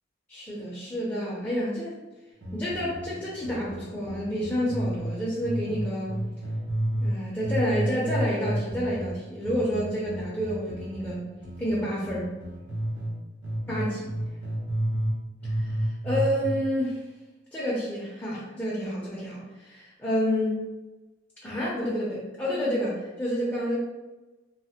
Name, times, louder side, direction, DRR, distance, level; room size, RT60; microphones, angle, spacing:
voice 1, 0.3-2.0 2.5-6.2 7.0-11.2 11.6-12.3 13.7-14.1 15.4-17.0 17.5-20.6 21.4-23.8, equal, 10° left, -7 dB, 0.5 m, -29 dB
sound 1, 2.4-5.1 5.4-7.2 7.4-13.1 13.4-15.2 15.4-16.5, right 1 dB, 80° right, 0.9 m, -31 dB
3.1 x 2.1 x 2.8 m, 1.1 s
head